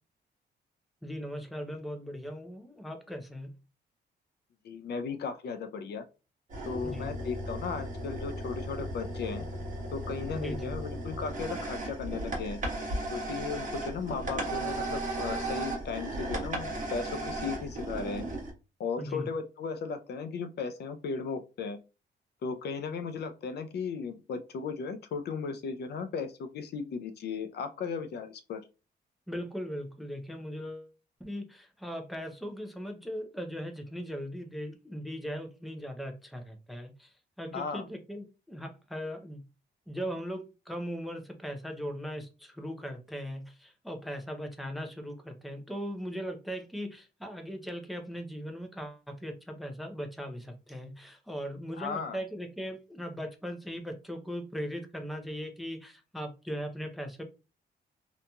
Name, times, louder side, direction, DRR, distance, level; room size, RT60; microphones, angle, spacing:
voice 1, 1.0-3.5 6.8-7.1 10.3-10.8 19.0-19.3 29.3-30.9 31.2-37.1 37.4-39.4 39.9-57.2, equal, ahead, 5 dB, 0.5 m, -39 dB
voice 2, 4.6-6.0 6.7-9.5 9.9-12.6 13.1-18.2 18.8-21.8 22.4-28.6 37.5-37.8 51.8-52.2, left 5 dB, 65° left, 9 dB, 0.4 m, -36 dB
sound 1, 6.5-18.5, right 1 dB, 45° right, 1.1 m, -35 dB
2.8 x 2.6 x 2.2 m, 0.30 s
cardioid pair, 120°, 19 cm